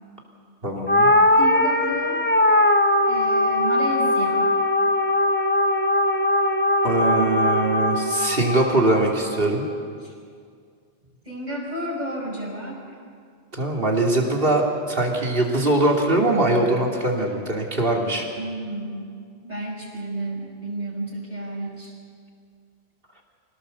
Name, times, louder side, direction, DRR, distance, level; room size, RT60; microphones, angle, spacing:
voice 1, 0.6-1.1 6.8-9.6 13.5-18.2, right 2 dB, 55° right, 0 dB, 3.2 m, -22 dB
sound 1, 0.9-9.4, left 1 dB, 10° left, 1.0 m, -20 dB
voice 2, 1.4-2.2 3.1-4.6 10.0-10.1 11.2-13.0 18.4-19.2 19.4-21.9, right 1 dB, 40° right, -1 dB, 5.3 m, -32 dB
26.0 x 18.0 x 7.0 m, 2.2 s
omnidirectional pair, 1.1 m